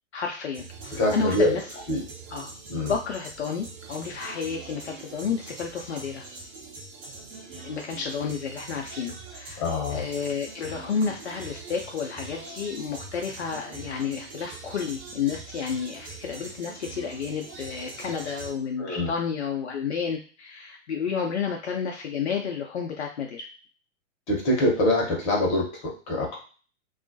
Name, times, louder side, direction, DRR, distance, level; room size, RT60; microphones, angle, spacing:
voice 1, 0.1-1.6 2.3-2.5 2.9-6.2 7.6-9.6 9.9-23.5, left 6 dB, 60° left, 1 dB, 0.5 m, -31 dB
sound 1, 0.5-18.5, right 3 dB, 45° right, 1.0 m, -42 dB
voice 2, 0.9-1.5 1.9-2.0 2.7-2.9 9.6-10.1 18.8-19.1 24.3-26.4, left 1 dB, 25° left, -2 dB, 0.7 m, -24 dB
2.3 x 2.1 x 2.6 m, 0.38 s
figure-of-eight pair, 110°, 39 cm